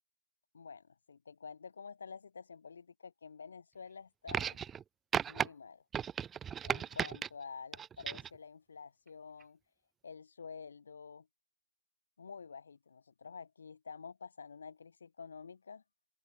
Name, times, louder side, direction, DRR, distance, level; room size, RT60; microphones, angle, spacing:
voice 1, 0.5-4.6 5.2-5.8 6.6-9.6 10.0-11.3 12.2-15.8, left 5 dB, 70° left, 1.6 m, -49 dB
sound 1, 4.3-4.8 5.1-5.5 5.9-7.3 7.7-8.4 9.4-9.5, right 8 dB, 10° right, 0.6 m, -35 dB
open air
hypercardioid pair, 155°, 0 cm